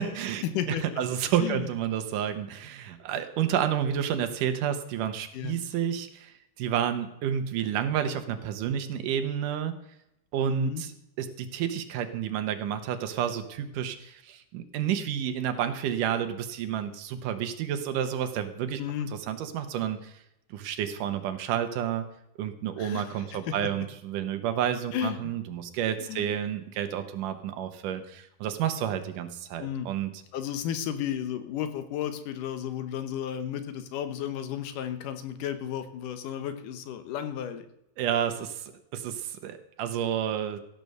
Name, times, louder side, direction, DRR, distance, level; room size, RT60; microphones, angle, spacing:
voice 1, 0.0-9.7 10.3-10.9 11.2-18.8 19.3-20.1 20.5-22.1 22.4-30.1 38.0-40.6, right 9 dB, 85° right, 8 dB, 2.6 m, -30 dB
voice 2, 0.5-1.0 1.4-1.7 5.3-5.6 10.5-10.8 18.8-19.1 22.8-23.6 24.9-25.3 26.0-26.4 29.6-29.9 30.3-37.7, left 9 dB, 90° left, 9 dB, 2.6 m, -33 dB
16.0 x 6.9 x 6.6 m, 0.81 s
omnidirectional pair, 3.6 m